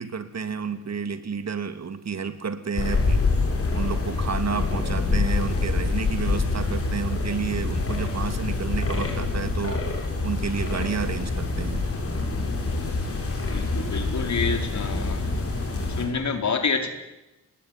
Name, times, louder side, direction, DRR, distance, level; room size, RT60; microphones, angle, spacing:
voice 1, 0.0-3.2 3.7-9.8 10.2-11.9, right 6 dB, 55° right, 9 dB, 2.6 m, -30 dB
sound 1, 2.8-16.1, left 3 dB, 45° left, 7.2 m, -26 dB
voice 2, 13.4-15.2 16.0-16.9, left 5 dB, 60° left, 6 dB, 4.4 m, -27 dB
27.0 x 20.5 x 9.9 m, 0.99 s
wide cardioid pair, 105°, 31 cm